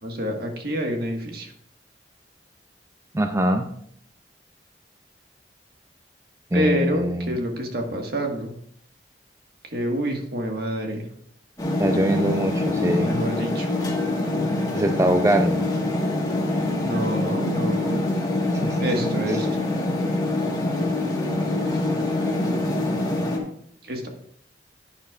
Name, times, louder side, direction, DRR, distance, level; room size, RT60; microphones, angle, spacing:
voice 1, 0.0-1.5 6.5-8.5 9.7-11.0 12.7-13.7 16.8-18.0 18.8-19.5 23.8-24.1, equal, 60° right, 2 dB, 1.7 m, -27 dB
voice 2, 3.1-3.7 6.5-7.3 11.8-13.2 14.7-15.7 18.6-18.8, right 1 dB, 15° right, 6 dB, 0.5 m, -22 dB
sound 1, 11.6-23.4, left 2 dB, 20° left, 1.5 m, -25 dB
11.0 x 9.4 x 2.5 m, 0.66 s
head